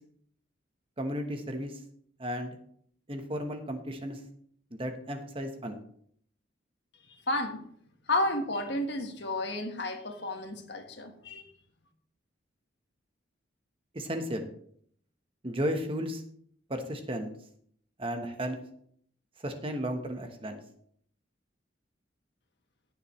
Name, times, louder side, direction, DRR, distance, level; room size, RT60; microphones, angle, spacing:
voice 1, 1.0-1.8 2.2-2.6 3.1-4.2 4.8-5.8 13.9-14.5 15.4-16.2 16.7-17.3 18.0-18.6 19.4-20.6, equal, 30° right, 6 dB, 1.2 m, -34 dB
voice 2, 7.3-7.6 8.1-11.4, left 2 dB, 60° left, 5 dB, 1.5 m, -31 dB
17.0 x 7.0 x 3.2 m, 0.63 s
head